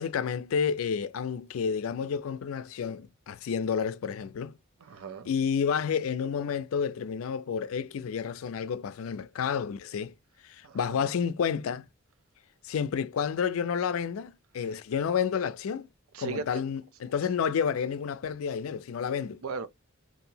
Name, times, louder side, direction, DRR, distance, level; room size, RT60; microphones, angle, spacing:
voice 1, 0.0-4.5 5.3-10.1 10.4-11.9 12.6-15.9 16.2-19.4, left 7 dB, 80° left, 0.4 m, -30 dB
voice 2, 4.8-5.3 10.6-11.0 16.1-16.4 19.4-19.7, right 5 dB, 90° right, 0.5 m, -37 dB
2.8 x 2.6 x 2.7 m
head